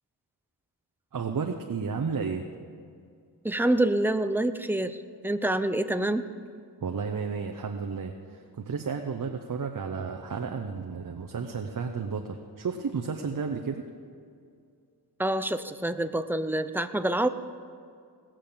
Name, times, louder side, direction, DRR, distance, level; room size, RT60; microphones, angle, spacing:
voice 1, 1.1-2.4 6.8-13.8, right 5 dB, 50° right, 4 dB, 0.8 m, -32 dB
voice 2, 3.4-6.3 15.2-17.3, right 1 dB, 5° right, 10 dB, 0.5 m, -27 dB
18.0 x 7.5 x 6.8 m, 2.3 s
wide cardioid pair, 105°, 41 cm